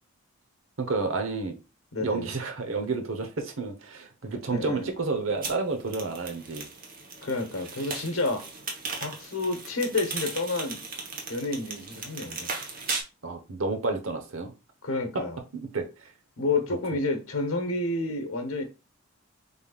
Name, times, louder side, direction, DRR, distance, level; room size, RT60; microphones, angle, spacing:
voice 1, 0.8-1.6 2.0-6.7 13.2-14.5 15.1-15.2 15.5-16.1, right 3 dB, 75° right, 1.0 m, -30 dB
voice 2, 1.9-2.3 4.5-4.9 7.2-8.5 9.0-10.8 11.3-12.5 14.8-15.4 16.4-18.6, left 2 dB, 80° left, 1.1 m, -29 dB
sound 1, 5.4-13.0, right 4 dB, 40° right, 1.1 m, -37 dB
5.3 x 3.6 x 2.4 m
head